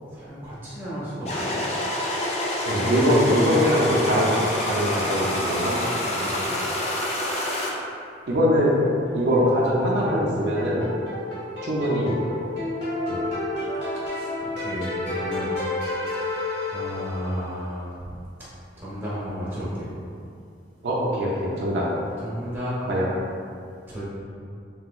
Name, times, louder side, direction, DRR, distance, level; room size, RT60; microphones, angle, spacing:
voice 1, 0.1-1.6 2.6-3.3 6.0-6.6 14.1-15.5 16.2-16.4 16.7-18.2 18.8-19.9 22.2-22.8 23.9-24.0, equal, 10° right, -10 dB, 0.8 m, -34 dB
sound 1, 1.3-7.7, left 1 dB, 35° left, 0.4 m, -27 dB
voice 2, 2.6-4.3 4.6-5.7 8.3-8.7 9.1-10.9 11.6-12.2 13.1-13.2 20.8-21.9 22.9-23.1, equal, 65° right, -5 dB, 0.5 m, -22 dB
Short Melody (Made in Ableton), 8.6-17.4, left 2 dB, 80° left, 1.1 m, -31 dB
3.2 x 2.9 x 2.3 m, 2.4 s
head